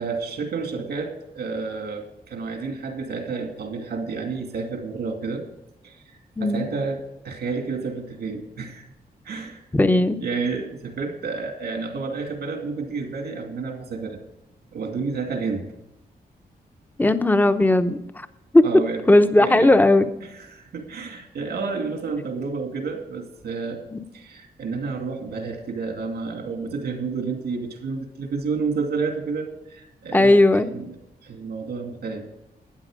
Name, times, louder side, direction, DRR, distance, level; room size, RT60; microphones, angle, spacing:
voice 1, 0.0-5.4 5.8-8.8 9.2-9.6 10.2-14.2 14.7-15.7 18.6-19.0 19.4-19.8 20.2-23.8 24.1-31.0 31.2-32.3, right 4 dB, 90° right, 4 dB, 2.5 m, -30 dB
voice 2, 9.7-10.2 17.0-18.3 18.5-18.6 19.1-20.1 23.9-24.0 30.1-30.7, left 2 dB, 10° left, 10 dB, 0.8 m, -17 dB
13.0 x 9.5 x 5.0 m, 0.89 s
wide cardioid pair, 130°, 16 cm